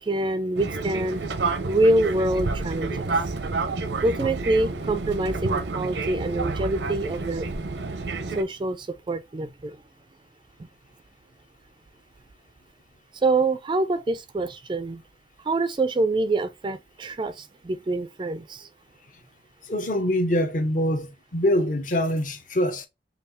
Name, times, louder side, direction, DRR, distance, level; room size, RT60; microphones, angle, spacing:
voice 1, 0.0-1.2 1.7-2.9 4.0-7.5 8.4-9.8 13.2-15.0 15.5-18.7, right 2 dB, 25° right, 0.3 m, -25 dB
Fixed-wing aircraft airplane, 0.6-8.4, right 3 dB, 85° right, 0.6 m, -29 dB
voice 2, 19.6-22.9, equal, 50° left, 0.7 m, -24 dB
5.5 x 2.3 x 2.5 m
head